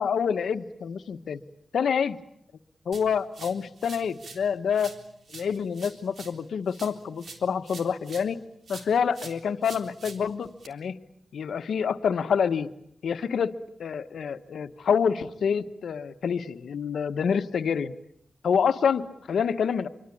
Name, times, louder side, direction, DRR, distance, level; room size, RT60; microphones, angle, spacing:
voice 1, 0.0-1.4 1.7-2.2 2.8-5.0 5.3-8.4 8.7-11.0 11.3-12.7 13.0-17.9 18.4-19.9, left 7 dB, 90° left, 10 dB, 1.3 m, -27 dB
sound 1, 2.9-4.5 4.7-8.4 8.7-10.7, right 4 dB, 70° right, 3.7 m, -46 dB
27.0 x 24.5 x 8.6 m, 0.71 s
cardioid pair, 80°, 0 cm